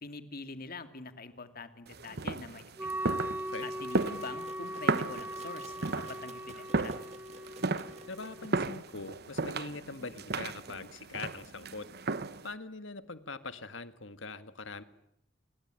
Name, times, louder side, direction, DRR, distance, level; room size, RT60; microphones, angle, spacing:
voice 1, 0.0-3.2 3.6-7.0, left 3 dB, 50° left, 9 dB, 2.4 m, -45 dB
sound 1, 1.9-12.5, right 3 dB, 55° right, 1.1 m, -35 dB
Wind instrument woodwind instrument, 2.8-8.6, right 1 dB, 10° right, 1.3 m, -40 dB
sound 2, 3.9-8.8, right 4 dB, 35° right, 2.4 m, -54 dB
voice 2, 8.1-11.9 12.4-14.8, left 3 dB, 70° left, 11 dB, 1.8 m, -42 dB
28.5 x 22.0 x 9.0 m, 0.80 s
head